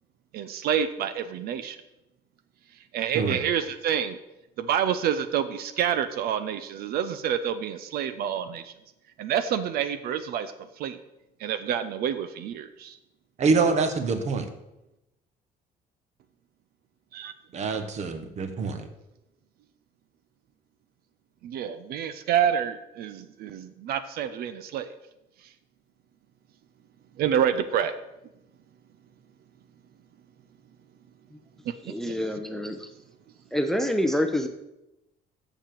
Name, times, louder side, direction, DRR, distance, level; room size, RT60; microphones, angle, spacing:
voice 1, 0.3-1.8 2.9-4.2 4.6-8.7 9.2-10.5 10.8-11.0 11.4-12.9 17.1-17.3 21.4-24.9 27.2-28.0, right 9 dB, 65° right, 11 dB, 0.6 m, -28 dB
voice 2, 13.4-14.5 17.5-18.9, right 4 dB, 40° right, 8 dB, 1.2 m, -25 dB
voice 3, 31.9-32.9 33.5-34.5, left 1 dB, ahead, 6 dB, 0.6 m, -26 dB
7.2 x 6.9 x 7.5 m, 0.92 s
cardioid pair, 155°, 17 cm